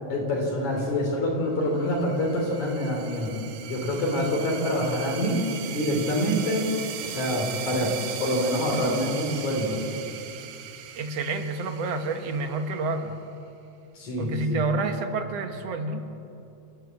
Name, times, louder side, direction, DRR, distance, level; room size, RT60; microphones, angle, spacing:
voice 1, 0.1-3.4 3.7-6.7 7.0-9.8 13.9-14.6, left 1 dB, 70° left, -2 dB, 4.6 m, -26 dB
sound 1, 1.8-13.1, right 9 dB, 80° right, 2.6 m, -38 dB
voice 2, 11.0-13.2 14.2-16.1, right 3 dB, 60° right, 6 dB, 2.3 m, -29 dB
28.5 x 13.5 x 8.4 m, 2.7 s
omnidirectional pair, 3.5 m